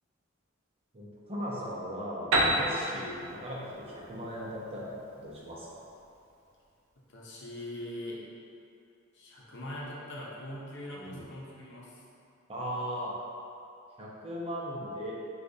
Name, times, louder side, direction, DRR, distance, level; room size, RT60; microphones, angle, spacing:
voice 1, 0.9-5.8 11.0-11.2 12.5-13.1 14.0-15.2, equal, 30° right, -5 dB, 0.7 m, -38 dB
Piano, 2.3-6.0, right 1 dB, 75° right, 0.6 m, -31 dB
voice 2, 7.0-8.2 9.1-12.0, left 1 dB, 60° left, -5 dB, 0.8 m, -42 dB
6.3 x 2.4 x 2.7 m, 2.6 s
head